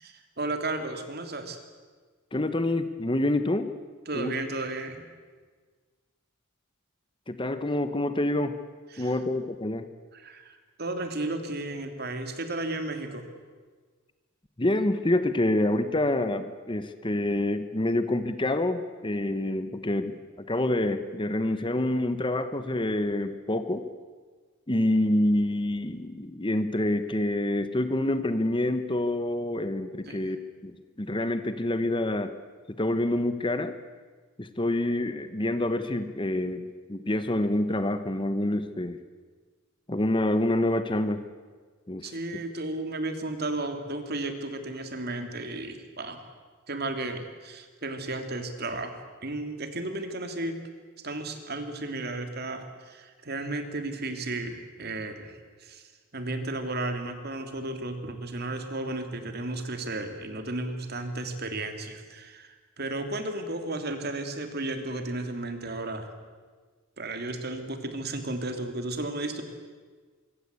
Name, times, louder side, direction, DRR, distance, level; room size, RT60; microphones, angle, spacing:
voice 1, 0.0-1.6 4.1-5.0 8.9-9.1 10.1-13.3 30.0-30.3 42.0-46.2 46.7-48.9 49.2-50.6 51.0-66.1 67.0-69.4, right 2 dB, 50° right, 7 dB, 3.0 m, -34 dB
voice 2, 2.3-3.7 4.1-4.4 7.3-8.6 9.0-9.9 14.6-23.9 24.7-30.7 31.0-32.3 32.7-33.8 34.4-39.0 39.9-41.2 41.9-42.1, left 1 dB, 25° left, 10 dB, 1.1 m, -27 dB
25.0 x 24.0 x 8.3 m, 1.5 s
head